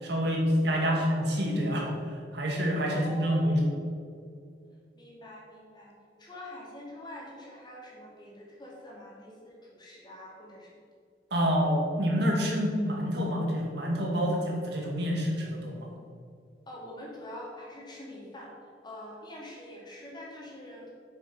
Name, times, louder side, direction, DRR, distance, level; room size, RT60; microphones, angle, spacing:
voice 1, 0.0-3.7 11.3-15.9, equal, 65° right, -1 dB, 2.2 m, -27 dB
voice 2, 2.9-3.6 4.9-5.9 6.2-10.7 16.7-18.5 18.8-20.9, left 1 dB, 25° left, -4 dB, 2.4 m, -45 dB
8.1 x 6.8 x 6.1 m, 2.3 s
head